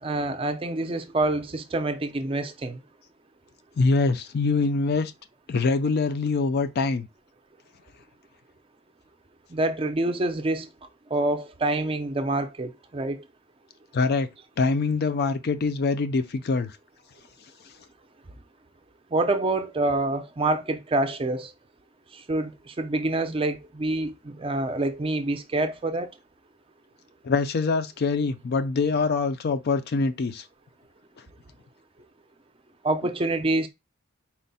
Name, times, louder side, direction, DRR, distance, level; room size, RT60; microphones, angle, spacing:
voice 1, 0.0-2.8 9.5-10.7 11.1-13.2 19.1-21.5 22.1-26.1 32.8-33.7, right 2 dB, 25° right, 0.5 m, -26 dB
voice 2, 3.8-5.1 5.5-7.1 13.9-14.3 14.6-16.7 27.2-30.4, left 4 dB, 50° left, 0.4 m, -24 dB
4.3 x 2.1 x 4.0 m
head